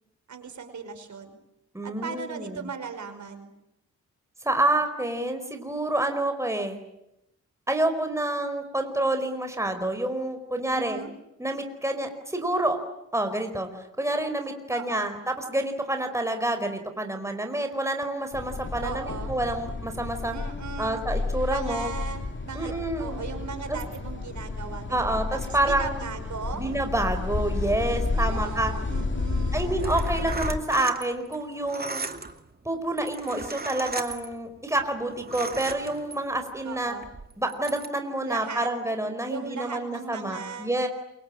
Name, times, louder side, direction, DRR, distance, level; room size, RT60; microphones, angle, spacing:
voice 1, 0.3-1.4 1.8-3.5 10.7-11.1 14.7-15.1 18.8-19.3 20.3-21.1 21.5-26.6 28.1-29.8 36.6-37.1 38.3-39.0 39.3-40.7, right 5 dB, 70° right, 7 dB, 5.4 m, -38 dB
voice 2, 1.7-2.7 4.4-6.8 7.7-11.0 11.4-12.8 13.1-13.7 14.0-20.3 20.8-21.9 22.5-23.2 23.7-23.8 24.9-26.0 26.5-28.7 29.5-32.0 32.6-36.9 37.4-40.9, right 1 dB, 10° right, 6 dB, 4.7 m, -28 dB
sound 1, 18.3-30.6, left 3 dB, 40° left, 2.9 m, -31 dB
sound 2, 29.6-36.4 37.0-37.9, right 3 dB, 30° right, 2.3 m, -36 dB
28.0 x 24.5 x 8.7 m, 0.86 s
cardioid pair, 90°, 31 cm